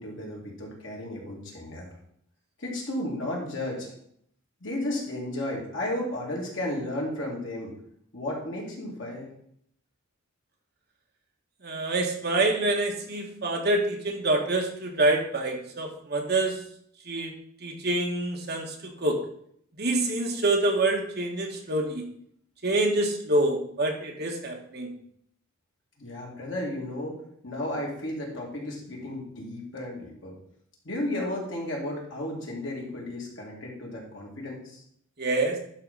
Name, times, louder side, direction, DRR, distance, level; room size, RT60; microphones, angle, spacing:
voice 1, 0.0-1.9 2.6-3.9 4.6-7.7 8.1-9.3 26.0-27.2 27.4-30.3 30.8-34.8, left 1 dB, 60° left, -2 dB, 2.6 m, -33 dB
voice 2, 11.6-16.6 17.1-17.3 17.6-19.2 19.8-22.0 22.6-24.9 35.2-35.6, right 2 dB, 45° right, 2 dB, 1.4 m, -26 dB
11.5 x 3.8 x 5.5 m, 0.67 s
head